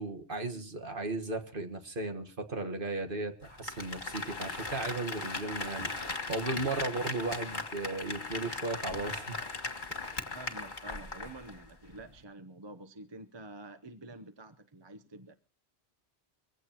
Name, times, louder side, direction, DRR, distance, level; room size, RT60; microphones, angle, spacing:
voice 1, 0.0-9.4 10.0-10.1, right 3 dB, 50° right, 6 dB, 1.7 m, -36 dB
Applause, 3.4-11.6 11.9-12.0, left 3 dB, 45° left, 2.1 m, -38 dB
voice 2, 10.0-15.4, right 2 dB, 25° right, 9 dB, 0.8 m, -48 dB
23.5 x 16.0 x 3.0 m, 0.34 s
omnidirectional pair, 1.1 m